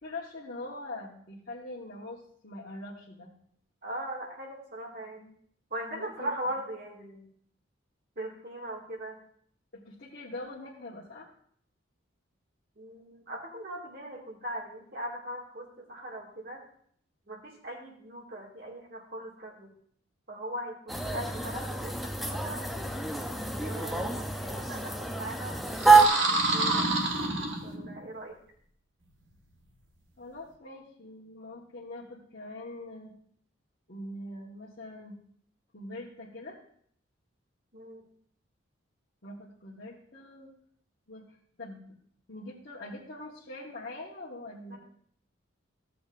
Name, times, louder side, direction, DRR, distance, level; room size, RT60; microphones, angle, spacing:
voice 1, 0.0-3.3 5.2-5.3 5.9-6.3 9.7-11.3 30.2-33.1 33.9-35.2 35.7-36.6 39.2-40.5 41.1-41.8 42.3-44.8, left 2 dB, 50° left, -8 dB, 1.4 m, -43 dB
voice 2, 3.8-5.2 5.7-7.3 8.2-9.2 12.8-16.6 17.3-19.7 20.3-22.9 23.6-26.9 27.6-28.4 37.7-38.0 44.7-44.8, right 1 dB, 50° right, -1 dB, 2.2 m, -40 dB
sound 1, 20.9-26.1, right 4 dB, ahead, 0.5 m, -26 dB
sound 2, 25.7-28.1, right 2 dB, 70° right, 1.4 m, -28 dB
15.0 x 7.0 x 2.5 m, 0.63 s
head